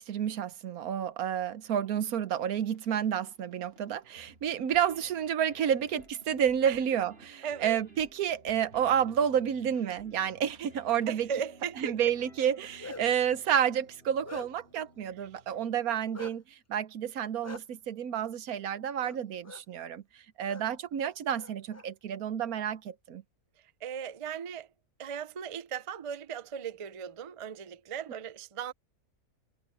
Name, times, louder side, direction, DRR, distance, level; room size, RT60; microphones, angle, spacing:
voice 1, 0.0-11.3 11.8-20.0 20.4-23.2, right 9 dB, 75° right, 1.3 m, -30 dB
sound 1, 2.4-15.9, right 1 dB, 40° right, 8.2 m, -58 dB
voice 2, 7.4-7.8 11.1-12.1 20.4-20.5 23.8-24.7 25.0-28.7, right 8 dB, 55° right, 0.3 m, -37 dB
Bark, 12.5-13.2 13.8-14.8 16.1-16.3 17.4-17.6 19.0-19.2 19.4-19.6 20.4-20.6 21.0-21.8, left 3 dB, 15° left, 0.5 m, -45 dB
omnidirectional pair, 1.6 m